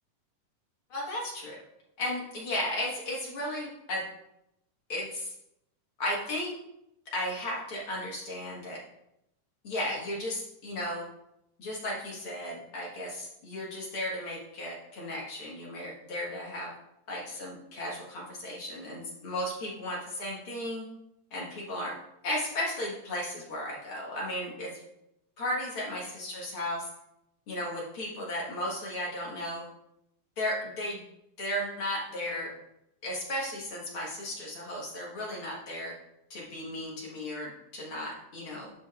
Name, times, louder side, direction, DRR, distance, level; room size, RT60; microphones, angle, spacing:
voice 1, 0.9-1.6 2.0-4.0 4.9-5.3 6.0-6.5 7.1-8.8 9.6-11.0 11.6-16.7 17.1-20.9 21.3-21.9 22.2-24.7 25.4-26.9 27.5-29.6 30.4-31.0 31.4-32.5 33.0-36.0 36.3-38.7, left 1 dB, 50° left, -4 dB, 1.9 m, -35 dB
12.5 x 5.1 x 2.4 m, 0.82 s
omnidirectional pair, 3.7 m